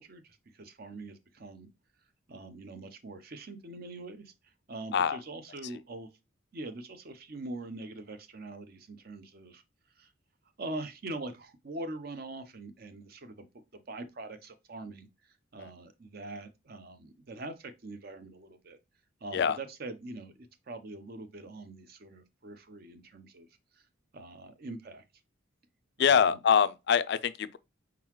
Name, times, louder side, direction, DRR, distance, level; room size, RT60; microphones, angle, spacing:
voice 1, 0.0-1.7 2.3-4.3 4.7-6.1 6.5-9.6 10.0-10.1 10.6-13.5 13.9-15.1 15.5-18.8 19.2-20.3 20.7-23.5 24.1-25.0 26.0-26.4, right 2 dB, 45° right, 0.6 m, -43 dB
voice 2, 26.0-27.6, left 7 dB, 55° left, 0.3 m, -24 dB
4.6 x 3.8 x 3.0 m
head